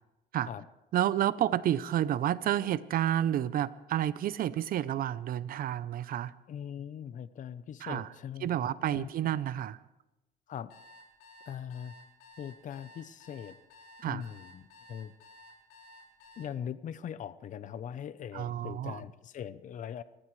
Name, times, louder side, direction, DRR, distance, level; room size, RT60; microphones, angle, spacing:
voice 1, 0.9-6.3 7.8-8.1 8.4-9.8 14.0-14.2 18.3-19.0, right 11 dB, 60° right, 17 dB, 0.7 m, -30 dB
voice 2, 6.5-8.5 8.9-9.1 10.5-10.7 11.5-11.9 12.4-13.6 14.0-15.1 16.4-20.0, left 9 dB, 50° left, 14 dB, 0.8 m, -41 dB
sound 1, 10.7-16.5, left 1 dB, 80° left, 5.0 m, -54 dB
29.5 x 15.0 x 3.3 m, 0.98 s
cardioid pair, 110°, 17 cm